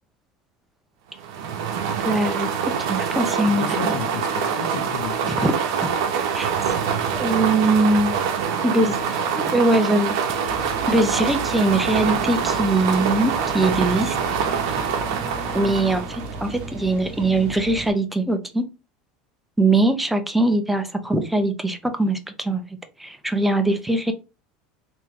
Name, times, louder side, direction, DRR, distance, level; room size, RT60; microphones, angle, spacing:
sound 1, 1.2-16.6, right 7 dB, 80° right, 0.8 m, -25 dB
voice 1, 2.0-3.6 5.3-5.6 6.3-6.5 7.2-8.2 8.6-9.0 9.4-10.4 10.9-14.1 15.5-18.6 19.6-22.6 23.0-24.1, right 2 dB, 5° right, 0.6 m, -21 dB
voice 2, 3.5-5.5 8.6-9.4, left 7 dB, 80° left, 0.9 m, -34 dB
sound 2, 10.4-17.9, right 2 dB, 45° right, 1.2 m, -35 dB
3.6 x 2.9 x 3.0 m
supercardioid pair, 135°, 3 cm